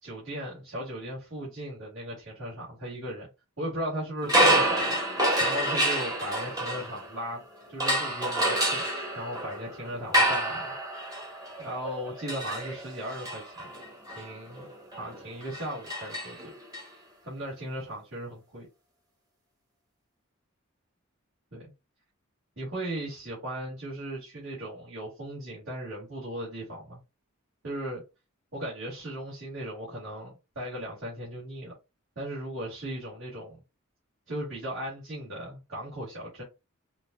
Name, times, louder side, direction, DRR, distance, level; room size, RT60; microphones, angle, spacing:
voice 1, 0.0-3.3 3.6-7.4 7.7-8.8 9.1-10.7 11.6-13.7 14.1-14.7 14.9-16.4 17.3-18.6 21.5-21.7 22.6-27.0 27.6-28.0 28.5-31.7 32.2-33.6 34.3-36.4, right 1 dB, 60° right, 2.4 m, -37 dB
sound 1, 4.2-7.3 7.8-16.8, right 1 dB, 20° right, 1.2 m, -28 dB
5.7 x 2.7 x 2.4 m
head